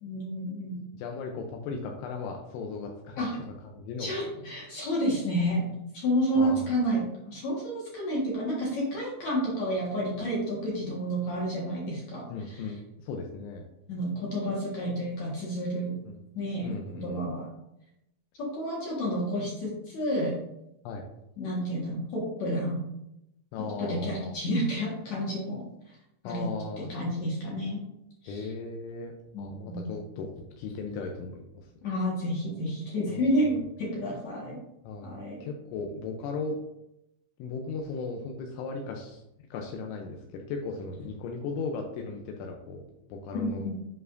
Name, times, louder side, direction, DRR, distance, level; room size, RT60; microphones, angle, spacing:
voice 1, 0.0-0.8 3.2-3.4 4.0-12.6 13.9-16.0 16.3-16.7 17.0-17.5 18.4-20.4 21.4-22.8 23.8-25.6 26.2-26.5 26.8-27.8 28.2-28.5 29.3-29.9 31.8-34.6 35.0-35.4 43.3-43.7, equal, 60° left, -4 dB, 1.9 m, -30 dB
voice 2, 0.9-3.4 3.8-4.1 6.4-6.7 12.3-13.7 16.1-16.2 16.6-17.3 20.8-21.1 23.5-24.3 26.2-26.9 28.3-29.1 29.4-31.7 33.1-33.4 34.8-36.6 37.4-39.2 39.5-42.8 43.1-43.7, left 4 dB, 85° left, 2 dB, 3.0 m, -37 dB
8.3 x 5.6 x 2.6 m, 0.84 s
omnidirectional pair, 5.4 m